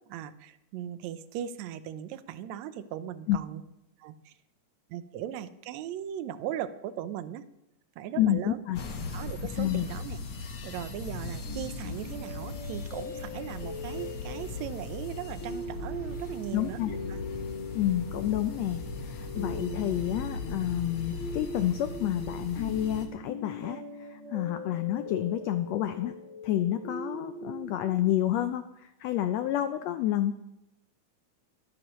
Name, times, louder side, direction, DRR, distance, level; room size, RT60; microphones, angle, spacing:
voice 1, 0.1-3.6 4.0-4.3 4.9-7.4 8.0-8.6 9.1-10.2 10.6-16.8 17.1-17.2, right 11 dB, 75° right, 12 dB, 1.8 m, -38 dB
voice 2, 8.2-8.8 9.6-9.9 16.5-17.0 17.7-26.1 26.4-30.3, left 12 dB, 85° left, 10 dB, 1.5 m, -29 dB
sound 1, 8.7-23.1, left 3 dB, 55° left, 1.8 m, -39 dB
sound 2, 11.4-28.1, left 1 dB, 30° left, 1.9 m, -41 dB
23.5 x 9.6 x 3.1 m, 0.87 s
omnidirectional pair, 3.6 m